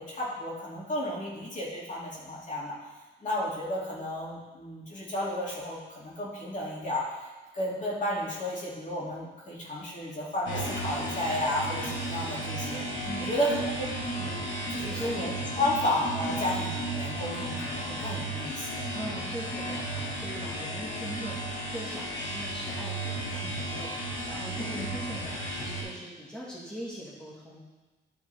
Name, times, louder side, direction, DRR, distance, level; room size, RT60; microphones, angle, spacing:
voice 1, 0.0-2.8 3.2-7.0 7.5-12.8 13.2-14.4 14.7-18.9 24.5-24.9, left 1 dB, 40° left, -5 dB, 2.1 m, -32 dB
sound 1, 10.5-25.8, right 1 dB, 70° left, 1.6 m, -34 dB
voice 2, 13.0-13.4 14.7-15.1 15.5-15.7 16.3-16.4 18.9-23.9 24.3-27.6, equal, 5° left, -7 dB, 1.6 m, -41 dB
10.5 x 3.7 x 3.3 m, 1.2 s
cardioid pair, 90°, 20 cm